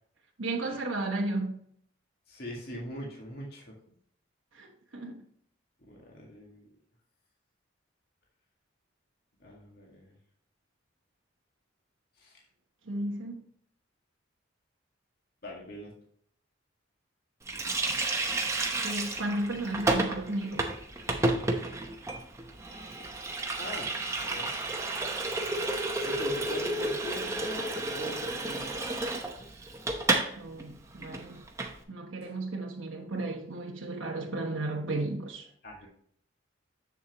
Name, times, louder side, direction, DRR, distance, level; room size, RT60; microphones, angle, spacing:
voice 1, 0.4-1.6 4.5-5.2 12.8-13.4 18.8-20.8 30.4-31.4 31.9-35.5, right 2 dB, 85° right, 1.2 m, -34 dB
voice 2, 2.3-3.8 5.8-6.7 9.4-10.1 12.2-12.4 15.4-15.9 23.6-23.9 24.2-24.5 26.0-28.9 35.6-35.9, equal, 50° left, 1.8 m, -42 dB
Water tap faucet, 17.5-30.3 30.6-30.7 31.0-31.7, right 2 dB, 15° right, 0.8 m, -31 dB
7.3 x 7.0 x 3.0 m
head